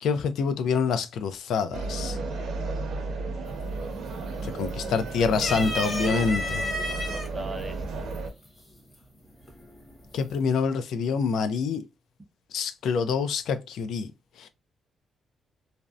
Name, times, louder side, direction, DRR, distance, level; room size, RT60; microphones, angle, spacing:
voice 1, 0.0-2.2 4.4-6.4 10.1-11.8 12.5-14.1 14.4-14.5, left 5 dB, 75° left, 0.4 m, -26 dB
sound 1, 1.7-8.3, right 3 dB, 70° right, 0.7 m, -33 dB
sound 2, 3.5-3.9 4.2-4.9 5.3-7.3 8.1-8.2 9.5-9.9, left 1 dB, 20° left, 0.9 m, -31 dB
voice 2, 6.0-8.1, right 3 dB, 15° right, 0.6 m, -38 dB
2.6 x 2.0 x 2.3 m
cardioid pair, 145°, 0 cm